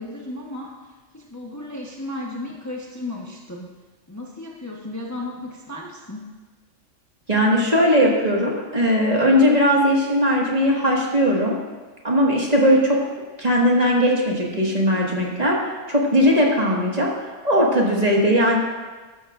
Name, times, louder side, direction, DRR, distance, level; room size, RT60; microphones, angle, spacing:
voice 1, 0.0-3.7 4.1-6.3, left 2 dB, 15° left, -2 dB, 1.0 m, -34 dB
voice 2, 7.3-11.6 12.0-13.0 13.4-18.6, equal, 30° right, -2 dB, 1.8 m, -19 dB
13.0 x 12.5 x 2.5 m, 1.3 s
omnidirectional pair, 1.3 m